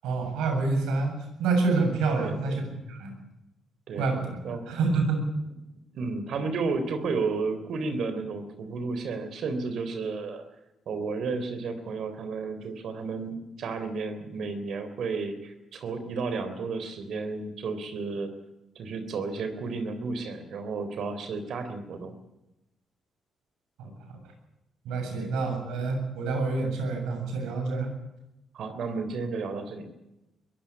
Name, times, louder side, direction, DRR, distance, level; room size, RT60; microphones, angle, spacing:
voice 1, 0.0-3.1 4.0-5.3 23.8-24.2 24.8-27.9, right 3 dB, 90° right, 4 dB, 7.4 m, -28 dB
voice 2, 2.2-2.6 3.9-4.1 4.4-4.7 5.9-10.4 10.9-18.3 18.8-22.1 25.2-25.4 28.5-29.9, right 4 dB, 65° right, 9 dB, 3.5 m, -32 dB
22.0 x 16.0 x 8.6 m, 0.93 s
cardioid pair, 90°, 0 cm